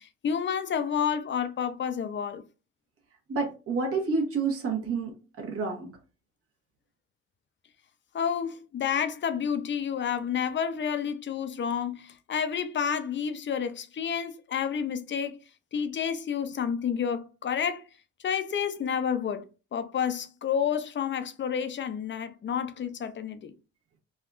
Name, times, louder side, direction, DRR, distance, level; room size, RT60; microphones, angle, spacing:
voice 1, 0.0-2.4 8.1-15.4 15.7-17.8 18.2-19.4 19.7-23.5, left 7 dB, 40° left, 0.5 m, -30 dB
voice 2, 3.3-5.1 5.4-5.9, right 4 dB, 50° right, 1.1 m, -29 dB
3.5 x 2.3 x 2.4 m
cardioid pair, 90°, 30 cm